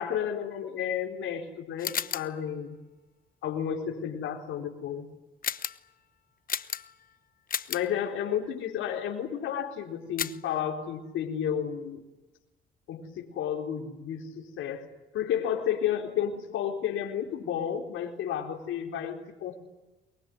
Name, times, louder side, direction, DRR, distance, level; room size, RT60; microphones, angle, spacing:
voice 1, 0.0-2.7 3.4-5.1 7.7-12.0 12.9-19.5, left 9 dB, 85° left, 1 dB, 4.2 m, -32 dB
sound 1, 1.8-2.4 5.4-5.9 6.5-7.1 7.5-7.9 10.2-10.5, left 7 dB, 45° left, 1.1 m, -33 dB
23.0 x 23.0 x 9.6 m, 1.1 s
cardioid pair, 90°, 20 cm